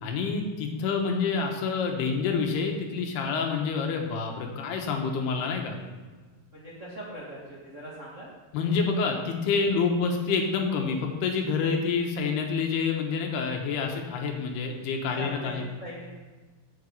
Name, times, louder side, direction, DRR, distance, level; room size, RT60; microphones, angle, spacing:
voice 1, 0.0-5.8 8.5-15.6, left 5 dB, 75° left, 2 dB, 3.1 m, -27 dB
voice 2, 6.5-8.3 15.1-16.0, right 1 dB, 75° right, -6 dB, 0.7 m, -40 dB
8.0 x 7.2 x 7.1 m, 1.3 s
omnidirectional pair, 4.7 m